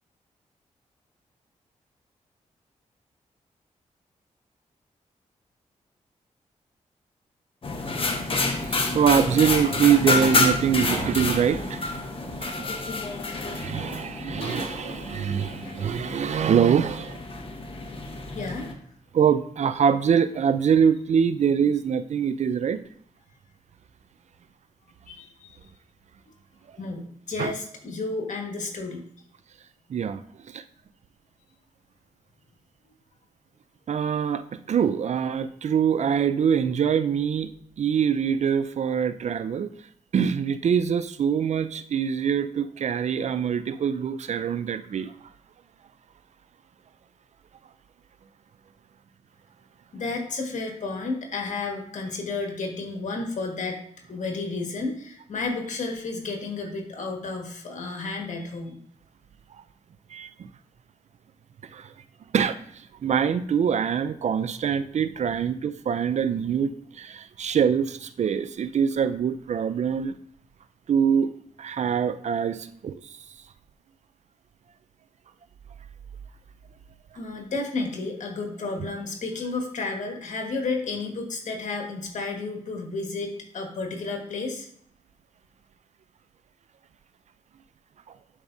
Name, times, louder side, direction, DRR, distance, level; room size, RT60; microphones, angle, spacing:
sound 1, 7.6-18.7, left 3 dB, 45° left, 1.2 m, -29 dB
voice 1, 8.6-12.7 13.4-17.2 19.1-22.8 27.4-27.5 29.9-30.6 33.9-37.5 37.8-39.7 40.1-45.1 60.1-60.5 61.6-61.9 62.3-70.2 70.9-71.3 71.6-73.2, right 7 dB, 60° right, 13 dB, 0.5 m, -24 dB
voice 2, 18.3-18.7 25.1-25.6 26.8-29.0 49.9-53.8 54.1-58.8 77.1-84.7, left 3 dB, 70° left, 2 dB, 1.7 m, -32 dB
10.5 x 4.7 x 2.7 m, 0.64 s
cardioid pair, 65°, 13 cm